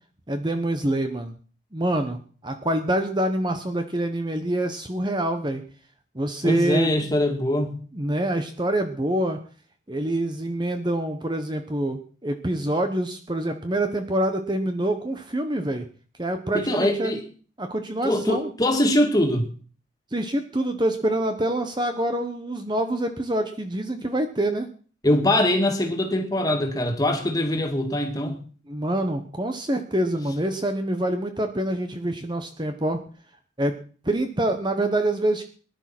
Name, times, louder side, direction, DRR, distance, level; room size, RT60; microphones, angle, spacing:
voice 1, 0.3-1.3 1.7-5.6 6.1-6.9 7.9-9.4 9.9-15.9 16.2-17.1 17.6-18.5 20.1-24.7 28.7-33.0 33.6-33.8 34.0-35.4, right 1 dB, 25° right, 7 dB, 1.1 m, -26 dB
voice 2, 6.4-7.8 16.5-17.2 18.0-19.5 25.0-28.4, left 1 dB, 20° left, 4 dB, 2.3 m, -23 dB
19.0 x 11.0 x 6.1 m, 0.43 s
head